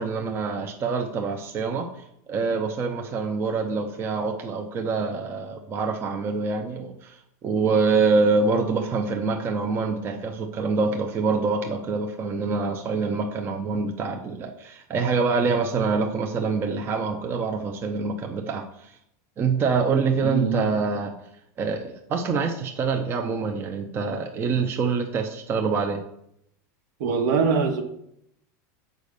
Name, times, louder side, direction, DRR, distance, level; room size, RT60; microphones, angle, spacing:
voice 1, 0.0-1.9 2.3-18.9 19.4-21.1 21.6-26.0, right 4 dB, 25° right, 4 dB, 0.7 m, -25 dB
voice 2, 20.2-20.7 27.0-27.8, right 5 dB, 65° right, 6 dB, 1.4 m, -23 dB
6.9 x 5.2 x 6.6 m, 0.76 s
supercardioid pair, 155°, 10 cm